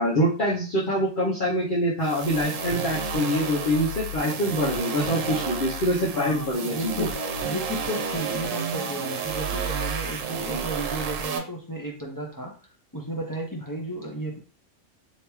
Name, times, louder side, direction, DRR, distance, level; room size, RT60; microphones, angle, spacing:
voice 1, 0.0-7.1 10.5-10.6, equal, 45° left, -6 dB, 0.9 m, -25 dB
sound 1, 2.0-11.4, right 5 dB, 85° right, 1.0 m, -31 dB
voice 2, 6.1-7.2 7.4-12.5 12.9-14.4, right 1 dB, 25° left, -1 dB, 0.5 m, -33 dB
3.3 x 2.9 x 3.0 m, 0.37 s
omnidirectional pair, 1.3 m